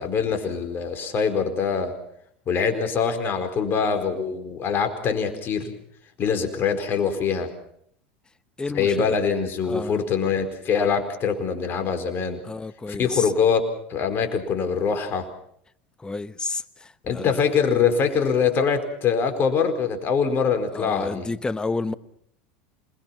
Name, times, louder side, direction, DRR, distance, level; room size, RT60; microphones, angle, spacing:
voice 1, 0.0-2.0 2.5-5.7 6.2-7.5 8.7-12.4 12.9-13.6 13.9-15.3 17.0-21.3, left 6 dB, 40° left, 4.4 m, -23 dB
voice 2, 8.6-9.2 9.6-10.0 12.4-13.3 16.0-17.4 20.7-21.9, left 3 dB, 15° left, 1.0 m, -30 dB
27.5 x 21.0 x 5.8 m
hypercardioid pair, 90°, 6 cm